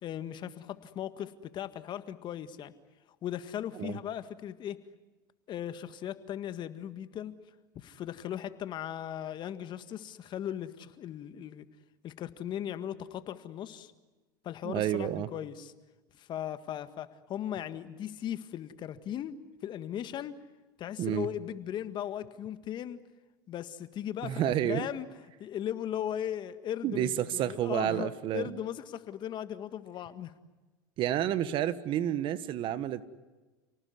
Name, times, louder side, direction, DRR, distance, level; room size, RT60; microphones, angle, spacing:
voice 1, 0.0-2.7 3.2-4.8 5.5-7.3 7.7-11.7 12.0-13.9 14.4-15.7 16.2-20.4 20.8-23.0 23.5-25.1 25.4-30.3, left 10 dB, 45° left, 11 dB, 1.8 m, -38 dB
voice 2, 14.6-15.3 21.0-21.3 24.2-24.9 26.8-28.6 31.0-33.1, right 11 dB, 50° right, 14 dB, 1.5 m, -30 dB
29.5 x 19.0 x 9.7 m, 1.2 s
hypercardioid pair, 95°, 11 cm